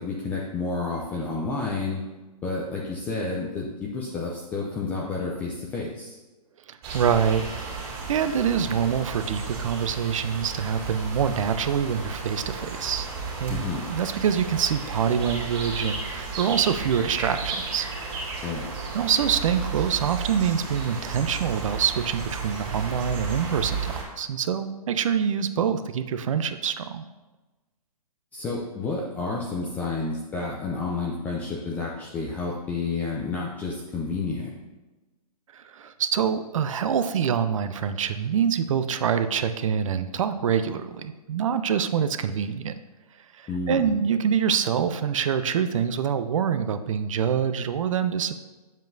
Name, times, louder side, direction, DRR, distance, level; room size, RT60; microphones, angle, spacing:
voice 1, 0.0-2.0 2.4-6.2 13.5-13.9 18.4-18.7 28.3-34.5 43.5-44.0, left 3 dB, 10° left, -3 dB, 0.4 m, -30 dB
voice 2, 6.7-13.1 13.4-17.9 18.9-27.0 35.5-42.7 43.4-48.4, right 7 dB, 55° right, 10 dB, 0.5 m, -25 dB
sound 1, 6.8-24.0, right 4 dB, 40° right, 2.3 m, -34 dB
7.4 x 7.3 x 2.6 m, 1.2 s
hypercardioid pair, 150°, 20 cm